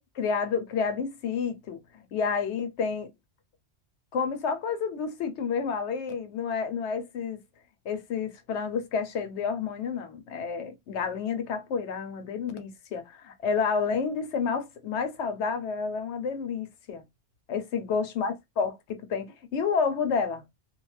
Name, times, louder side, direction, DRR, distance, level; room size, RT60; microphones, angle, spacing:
voice 1, 0.2-1.8 2.1-3.1 4.1-7.4 7.8-17.0 17.5-19.3 19.5-20.4, left 5 dB, 75° left, 0.9 m, -30 dB
2.4 x 2.3 x 3.1 m
omnidirectional pair, 1.2 m